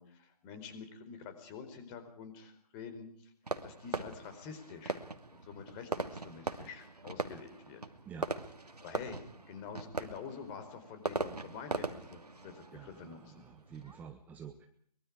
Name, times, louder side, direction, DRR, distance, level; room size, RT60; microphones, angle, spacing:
voice 1, 0.0-3.3 3.6-5.0 5.3-7.8 8.8-9.2 9.5-13.4, left 6 dB, 20° left, 9 dB, 4.3 m, -47 dB
Fireworks, 3.5-14.0, right 3 dB, 90° right, 2.7 m, -41 dB
voice 2, 8.1-8.5 12.7-14.7, right 7 dB, 10° right, 7 dB, 1.0 m, -49 dB
24.0 x 23.0 x 4.9 m, 0.63 s
figure-of-eight pair, 150°, 20 cm